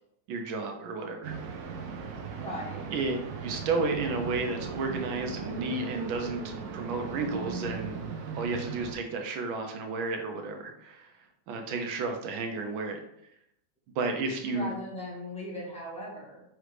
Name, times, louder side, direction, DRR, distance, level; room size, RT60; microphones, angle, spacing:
voice 1, 0.3-1.3 2.9-3.2 3.4-8.0 8.3-11.1 11.5-13.0 13.9-14.7, right 3 dB, 90° right, 4 dB, 1.4 m, -32 dB
sound 1, 1.2-8.9, right 5 dB, 70° right, 0.9 m, -38 dB
voice 2, 2.3-2.9 14.5-16.4, equal, 5° left, -6 dB, 1.3 m, -38 dB
4.9 x 3.1 x 3.2 m, 0.78 s
omnidirectional pair, 2.1 m